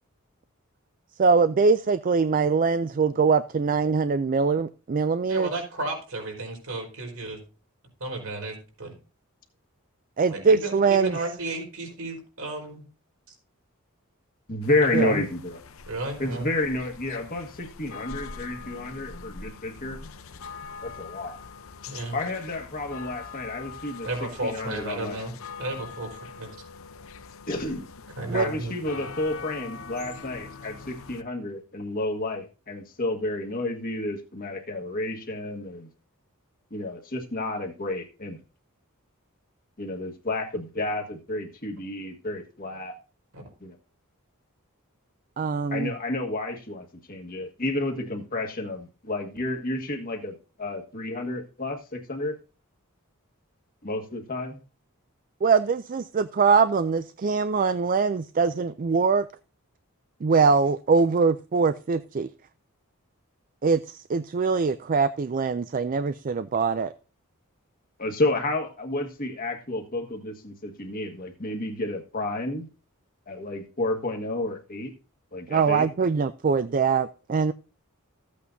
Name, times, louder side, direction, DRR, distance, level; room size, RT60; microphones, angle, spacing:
voice 1, 1.2-5.5 10.2-11.1 14.9-15.1 28.3-28.5 45.4-45.9 55.4-59.3 60.2-62.3 63.6-66.9 75.5-77.5, right 5 dB, 40° right, 0.4 m, -23 dB
voice 2, 5.3-7.4 8.0-9.0 10.3-12.8 14.8-15.2 15.9-16.5 21.9-22.2 24.0-26.5 28.2-28.7 43.3-43.4, right 2 dB, 75° right, 4.6 m, -33 dB
voice 3, 14.5-15.6 16.2-20.0 20.8-21.4 22.1-25.2 27.5-27.8 28.3-35.9 36.7-38.4 39.8-42.9 43.6-43.7 45.7-52.4 53.8-54.6 68.0-72.7 73.3-74.9 75.3-75.9, left 2 dB, 40° left, 1.6 m, -30 dB
sound 1, 14.6-31.2, left 5 dB, 70° left, 0.8 m, -43 dB
14.5 x 8.5 x 2.7 m
head